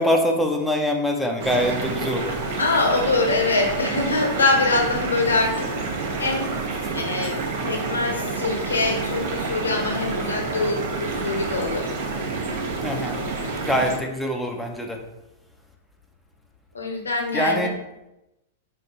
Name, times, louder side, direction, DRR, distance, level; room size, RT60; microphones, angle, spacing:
voice 1, 0.0-2.4 12.8-13.2 13.6-15.0 17.3-17.7, equal, ahead, 1 dB, 0.7 m, -23 dB
sound 1, 1.4-14.0, right 3 dB, 55° right, 0.8 m, -28 dB
voice 2, 2.6-5.7 6.2-6.5 6.9-7.3 7.6-11.9 16.7-17.7, left 3 dB, 85° left, 1 dB, 0.9 m, -23 dB
4.2 x 2.6 x 4.0 m, 0.94 s
hypercardioid pair, 110°, 0 cm